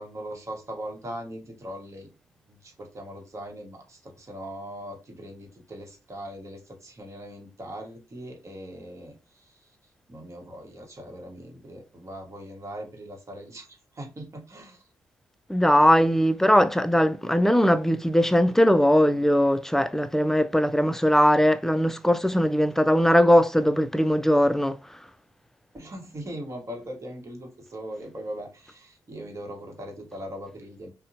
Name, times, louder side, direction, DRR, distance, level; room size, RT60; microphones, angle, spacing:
voice 1, 0.0-2.1 2.5-9.7 10.1-14.9 25.7-30.9, equal, 40° right, 1.1 m, -40 dB
voice 2, 15.5-24.8, equal, 5° left, 0.3 m, -20 dB
2.7 x 2.1 x 2.6 m
supercardioid pair, 50°, 8 cm